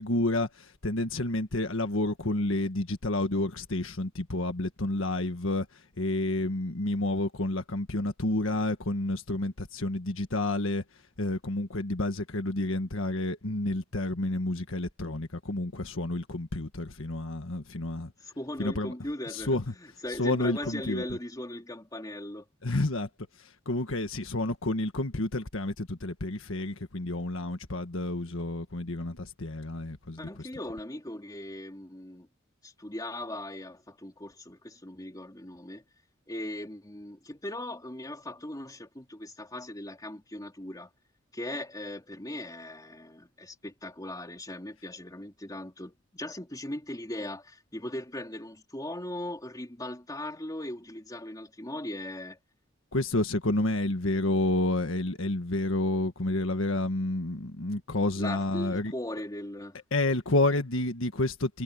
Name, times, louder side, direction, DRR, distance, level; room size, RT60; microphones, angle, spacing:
voice 1, 0.0-10.8 11.2-18.1 18.6-18.9 19.3-19.7 20.2-21.0 22.6-23.1 23.4-30.5 52.9-58.9 59.9-61.6, left 2 dB, 70° left, 1.6 m, -30 dB
voice 2, 18.2-22.4 30.2-32.3 32.6-35.8 36.3-40.9 41.3-52.4 58.2-59.8, left 1 dB, 20° left, 3.0 m, -39 dB
head